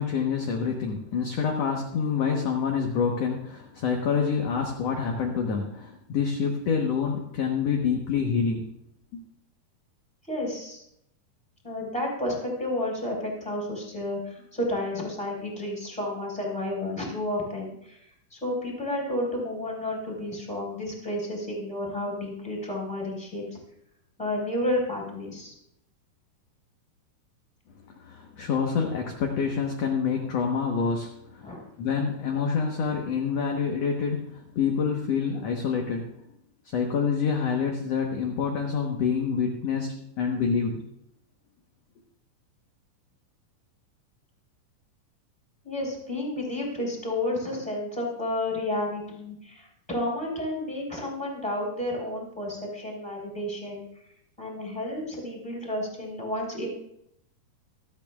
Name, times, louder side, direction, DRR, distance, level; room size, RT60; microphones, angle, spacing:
voice 1, 0.0-8.6 9.1-9.2 27.9-36.1 36.7-40.8, left 6 dB, 60° left, 1 dB, 1.8 m, -27 dB
voice 2, 10.3-10.8 11.6-18.0 18.3-23.6 24.2-25.5 31.4-31.6 45.6-53.9 54.4-56.7, left 1 dB, ahead, -3 dB, 3.9 m, -31 dB
26.0 x 8.7 x 2.3 m, 0.76 s
omnidirectional pair, 4.1 m